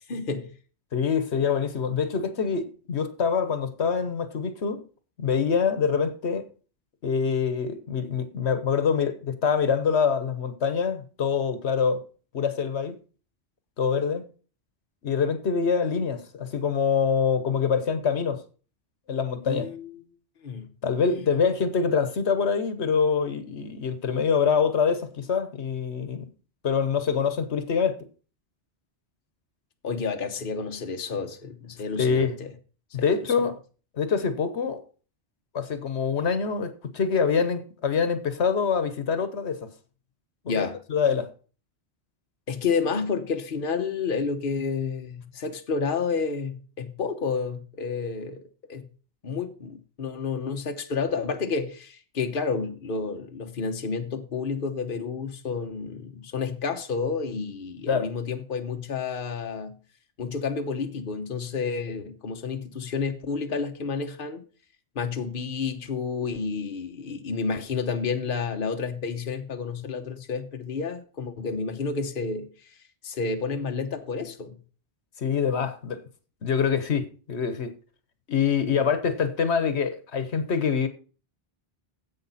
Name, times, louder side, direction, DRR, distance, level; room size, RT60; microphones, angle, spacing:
voice 1, 0.1-0.5 19.5-20.1 20.4-20.7 29.8-32.5 40.5-40.8 42.5-48.9 49.2-59.7 60.2-64.4 64.9-72.5 73.0-74.6 78.6-78.7, left 5 dB, 55° left, 1.2 m, -30 dB
voice 2, 0.9-4.8 5.2-6.5 7.0-12.0 12.3-13.0 13.8-14.2 15.0-18.4 19.1-19.7 20.8-26.3 26.6-28.0 32.0-32.4 32.9-33.6 34.0-34.8 35.5-39.7 40.4-41.3 57.9-58.1 75.2-76.0 76.4-77.7 78.3-80.9, left 6 dB, 80° left, 1.4 m, -25 dB
11.0 x 8.1 x 4.2 m
omnidirectional pair, 1.1 m